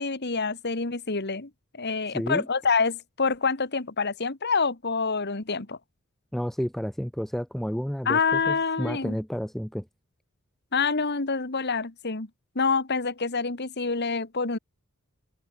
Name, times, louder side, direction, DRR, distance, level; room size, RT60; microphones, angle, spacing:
voice 1, 0.0-5.8 8.1-9.2 10.7-12.3 12.6-14.6, left 4 dB, 50° left, 1.8 m, -27 dB
voice 2, 2.1-2.5 6.3-9.9, equal, ahead, 0.4 m, -31 dB
head